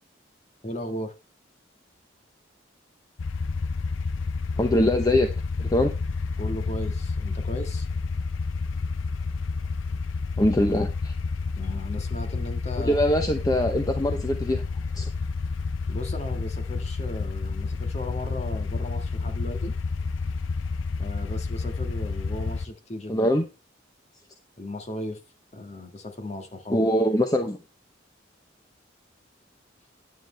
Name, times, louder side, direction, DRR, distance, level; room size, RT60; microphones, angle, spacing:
voice 1, 0.6-1.2 6.4-7.9 11.6-13.0 15.9-19.7 21.0-23.3 24.6-25.2 25.5-26.9, left 1 dB, 35° left, 1.6 m, -36 dB
sound 1, 3.2-22.7, left 4 dB, 90° left, 0.6 m, -30 dB
voice 2, 4.6-5.3 5.6-5.9 10.4-11.1 12.8-14.6 14.9-15.1 23.1-23.4 26.7-27.6, left 1 dB, 20° left, 0.8 m, -23 dB
9.4 x 9.2 x 3.3 m
head